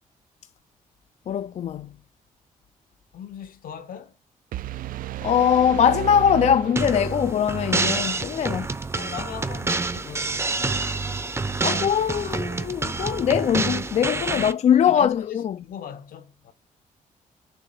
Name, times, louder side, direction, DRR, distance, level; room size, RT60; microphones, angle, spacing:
voice 1, 1.3-1.9 5.2-8.7 11.6-15.6, left 8 dB, 50° left, 0.4 m, -22 dB
voice 2, 3.1-4.1 8.9-10.9 14.3-16.5, left 8 dB, 75° left, 1.3 m, -40 dB
sound 1, 4.5-7.5, right 14 dB, 70° right, 0.4 m, -33 dB
sound 2, 6.8-14.5, right 3 dB, 20° right, 0.6 m, -27 dB
6.9 x 3.1 x 5.5 m
cardioid pair, 120°, 15 cm